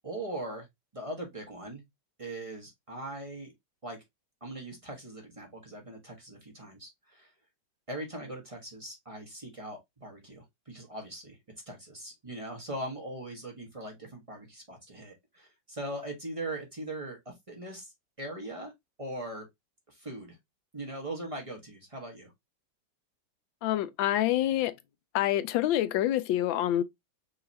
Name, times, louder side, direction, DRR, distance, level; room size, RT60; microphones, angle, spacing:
voice 1, 0.0-0.7 0.9-1.8 2.2-3.5 3.8-4.0 4.4-7.3 7.9-11.4 11.7-17.9 18.2-18.7 19.0-19.5 19.9-20.4 20.7-22.3, right 1 dB, 20° right, 0.9 m, -40 dB
voice 2, 23.6-24.7 25.1-26.8, left 13 dB, 90° left, 1.3 m, -26 dB
5.3 x 2.9 x 2.6 m
omnidirectional pair, 2.0 m